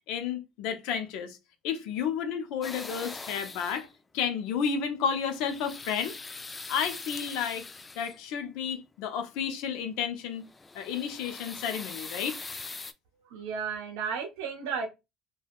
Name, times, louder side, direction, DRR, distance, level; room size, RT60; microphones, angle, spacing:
voice 1, 0.1-1.4 1.6-3.9 4.1-6.1 6.7-7.7 8.0-10.5 10.7-12.4, left 7 dB, 75° left, 0.5 m, -31 dB
sound 1, 2.6-4.0 5.1-8.3 10.3-12.9, left 3 dB, 25° left, 0.3 m, -42 dB
voice 2, 13.3-14.9, right 6 dB, 80° right, 0.6 m, -33 dB
3.3 x 2.1 x 2.3 m
hypercardioid pair, 75°, 0 cm